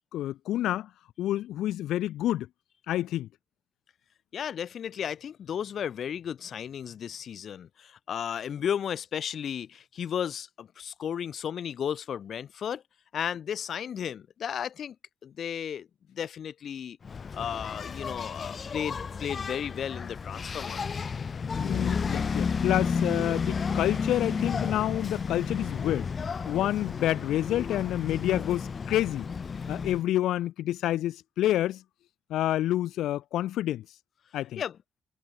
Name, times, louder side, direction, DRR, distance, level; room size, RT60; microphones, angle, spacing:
voice 1, 0.1-0.9 1.2-2.5 2.9-3.3 21.5-26.1 26.4-29.3 29.7-31.8 32.3-33.8 34.3-34.6, left 13 dB, 80° left, 1.4 m, -28 dB
voice 2, 4.3-12.8 13.1-15.0 15.2-17.0 17.3-20.8 34.6-34.8, left 8 dB, 60° left, 7.5 m, -34 dB
Engine, 17.0-30.0, left 5 dB, 40° left, 4.4 m, -32 dB
cardioid pair, 90°, 0 cm